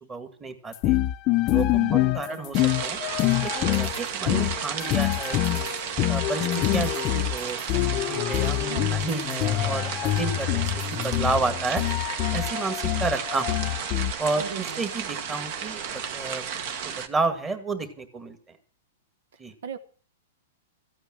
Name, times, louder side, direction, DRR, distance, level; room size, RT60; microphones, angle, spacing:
voice 1, 0.1-1.0 1.5-1.8 2.1-3.0 3.4-5.7 6.1-7.6 7.9-8.6 8.9-11.8 12.3-13.8 14.2-14.5 14.8-16.5 16.8-18.4 19.4-19.5, right 3 dB, 15° right, 9 dB, 1.9 m, -31 dB
sound 1, 0.7-14.1, left 16 dB, 35° left, 0.7 m, -25 dB
voice 2, 1.8-2.4 8.7-9.1 14.3-14.8 19.6-19.8, right 8 dB, 70° right, 10 dB, 1.2 m, -37 dB
sound 2, 2.5-17.1, right 7 dB, 50° right, 1.7 m, -33 dB
14.5 x 8.8 x 7.6 m, 0.41 s
hypercardioid pair, 150°, 0 cm